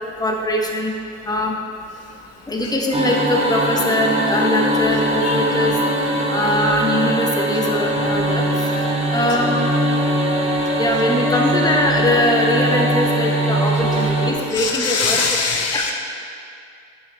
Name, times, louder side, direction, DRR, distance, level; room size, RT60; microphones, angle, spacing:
voice 1, 0.2-0.9 1.2-1.6 2.5-5.7 6.3-8.4 9.1-9.6 10.8-15.2 15.7-15.8, left 1 dB, 15° left, 0 dB, 1.0 m, -21 dB
sound 1, 2.9-14.3, right 1 dB, 20° right, 1.4 m, -21 dB
voice 2, 14.6-16.0, left 4 dB, 55° left, 2 dB, 0.6 m, -21 dB
9.2 x 6.2 x 3.4 m, 2.5 s
cardioid pair, 90°, 30 cm